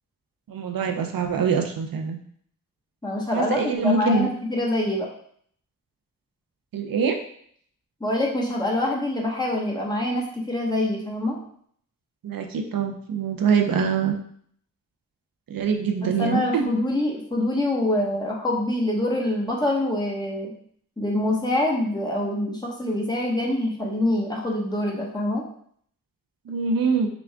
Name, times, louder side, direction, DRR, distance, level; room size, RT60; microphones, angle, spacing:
voice 1, 0.5-2.2 3.3-4.3 6.7-7.2 12.2-14.1 15.5-16.7 26.5-27.1, right 5 dB, 85° right, 5 dB, 0.6 m, -24 dB
voice 2, 3.0-5.1 8.0-11.4 16.0-20.5 21.0-25.4, left 1 dB, 10° left, -3 dB, 1.2 m, -25 dB
5.9 x 2.4 x 3.5 m, 0.62 s
wide cardioid pair, 90°, 34 cm